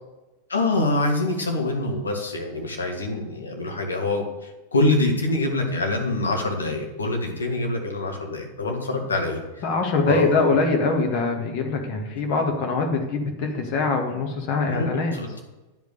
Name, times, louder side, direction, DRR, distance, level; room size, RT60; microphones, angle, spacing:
voice 1, 0.5-9.4 10.0-10.4 14.7-15.4, left 2 dB, 75° left, 2 dB, 1.8 m, -25 dB
voice 2, 9.6-15.2, left 3 dB, 40° left, 3 dB, 1.8 m, -23 dB
10.5 x 5.2 x 6.7 m, 1.1 s
figure-of-eight pair, 90°, 0 cm